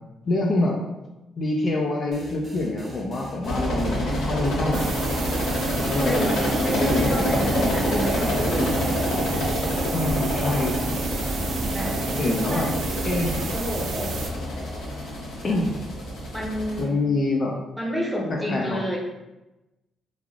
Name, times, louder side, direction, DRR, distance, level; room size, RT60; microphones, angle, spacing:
voice 1, 0.2-0.8 1.4-4.9 5.9-7.3 9.9-10.8 12.2-12.7 13.0-13.3 15.4-15.7 16.8-17.6 18.5-18.8, left 2 dB, 50° left, -1 dB, 0.4 m, -25 dB
sound 1, 2.1-7.4, equal, 35° right, 0.7 m, -43 dB
sound 2, 3.4-16.8, equal, 85° left, 0.8 m, -26 dB
sound 3, 4.7-14.3, right 4 dB, 70° right, 0.4 m, -32 dB
voice 2, 6.0-8.7 11.7-12.7 13.5-14.2 16.3-16.9 17.8-19.0, equal, ahead, -3 dB, 0.8 m, -29 dB
3.2 x 2.4 x 2.4 m, 1.0 s
cardioid pair, 90°, 0 cm